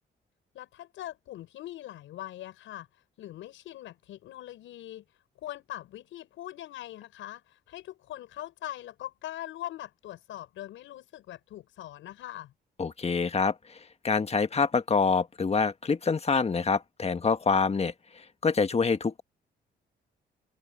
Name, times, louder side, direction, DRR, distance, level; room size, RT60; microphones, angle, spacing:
voice 1, 0.5-2.9 3.2-5.0 5.4-12.5, left 13 dB, 85° left, 6.4 m, -42 dB
voice 2, 12.8-13.8 14.0-17.9 18.4-19.2, left 5 dB, 30° left, 1.4 m, -26 dB
cardioid pair, 75°, 20 cm